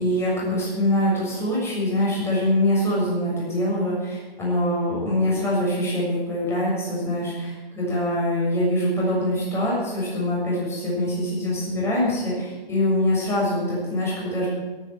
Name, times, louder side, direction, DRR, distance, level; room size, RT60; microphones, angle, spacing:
voice 1, 0.0-14.5, left 1 dB, 10° left, -6 dB, 7.0 m, -24 dB
16.0 x 9.7 x 9.1 m, 1.2 s
hypercardioid pair, 145°, 30 cm